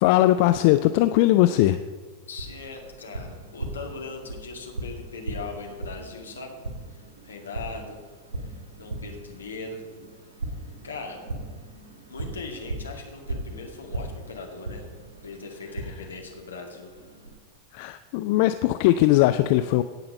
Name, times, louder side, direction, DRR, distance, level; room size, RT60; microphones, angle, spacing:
voice 1, 0.0-1.9 17.7-19.8, left 15 dB, 45° left, 11 dB, 0.4 m, -20 dB
voice 2, 2.3-6.6 6.9-8.0 8.4-9.8 10.8-11.2 12.1-14.9 15.2-16.9, left 4 dB, 70° left, 1 dB, 1.9 m, -39 dB
Tap, 2.4-17.3, right 2 dB, 65° right, 2.3 m, -38 dB
17.5 x 5.8 x 5.3 m, 1.5 s
figure-of-eight pair, 90°, 0 cm